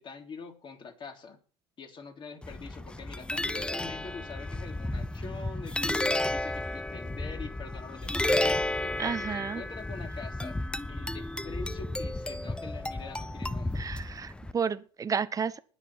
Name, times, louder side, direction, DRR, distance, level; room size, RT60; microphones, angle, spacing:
voice 1, 0.0-1.4 1.8-13.9, left 4 dB, 35° left, 3 dB, 3.5 m, -44 dB
sound 1, 2.4-14.5, left 1 dB, 5° left, 0.7 m, -32 dB
voice 2, 9.0-9.6 13.7-15.6, right 6 dB, 25° right, 14 dB, 1.0 m, -31 dB
20.0 x 6.9 x 4.5 m, 0.37 s
supercardioid pair, 105°, 14 cm